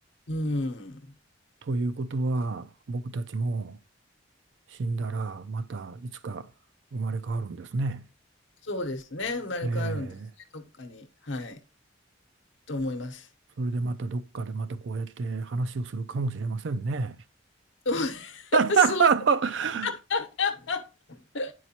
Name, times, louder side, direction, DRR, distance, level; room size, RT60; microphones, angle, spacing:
voice 1, 0.3-1.1 8.6-10.2 10.5-11.6 12.7-13.3 17.8-19.1 19.8-21.5, left 3 dB, 65° left, 0.9 m, -31 dB
voice 2, 1.7-3.8 4.8-6.5 6.9-8.0 9.6-10.2 13.6-17.2 18.5-19.9, right 4 dB, 65° right, 0.4 m, -28 dB
9.0 x 4.6 x 2.8 m
head